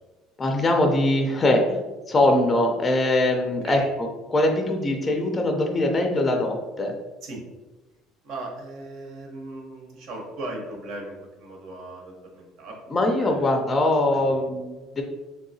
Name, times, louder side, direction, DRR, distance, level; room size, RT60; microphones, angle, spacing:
voice 1, 0.4-1.8 2.1-3.8 4.3-6.9 12.9-15.0, left 1 dB, 25° left, 3 dB, 0.4 m, -22 dB
voice 2, 8.2-12.8 13.2-13.6 14.1-14.4, right 2 dB, 70° right, 0 dB, 0.8 m, -38 dB
3.4 x 2.7 x 2.7 m, 1.2 s
cardioid pair, 135°, 0 cm